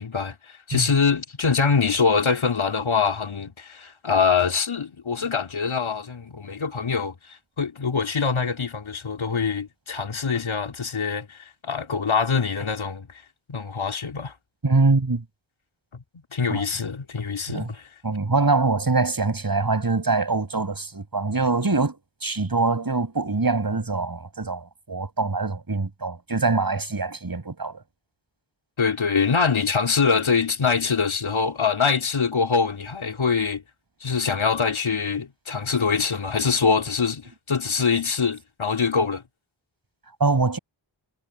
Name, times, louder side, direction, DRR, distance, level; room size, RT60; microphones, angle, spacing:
voice 1, 0.0-13.2 13.5-14.3 15.9-16.0 16.3-17.9 28.8-33.6 34.0-39.2, left 5 dB, 75° left, 4.2 m, -24 dB
voice 2, 14.6-15.2 16.5-16.6 17.5-17.7 18.0-27.8 40.2-40.6, right 3 dB, 45° right, 7.4 m, -24 dB
cardioid pair, 40°, 48 cm